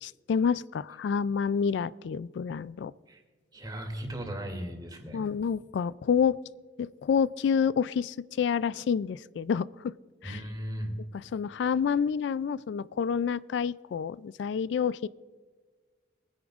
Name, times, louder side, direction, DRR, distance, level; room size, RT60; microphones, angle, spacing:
voice 1, 0.0-2.9 5.1-6.4 6.8-9.9 10.2-10.4 11.3-15.1, left 6 dB, 70° left, 19 dB, 0.3 m, -28 dB
voice 2, 3.5-5.2 10.2-10.9, equal, 25° right, 2 dB, 2.5 m, -37 dB
23.0 x 10.0 x 2.4 m, 1.5 s
head